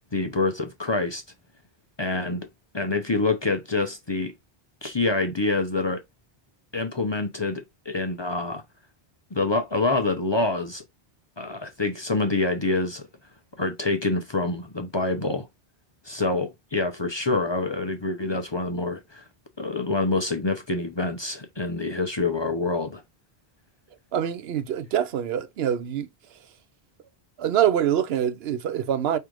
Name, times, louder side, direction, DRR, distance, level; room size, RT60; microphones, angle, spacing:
voice 1, 0.1-1.2 2.0-2.5 2.7-4.3 4.8-6.0 6.7-8.6 9.3-10.8 11.4-13.0 13.6-15.5 16.0-19.2 19.6-23.0, left 3 dB, 30° left, 0.6 m, -26 dB
voice 2, 24.1-26.1 27.4-29.2, right 10 dB, 80° right, 0.9 m, -25 dB
5.0 x 3.3 x 3.0 m
omnidirectional pair, 1.0 m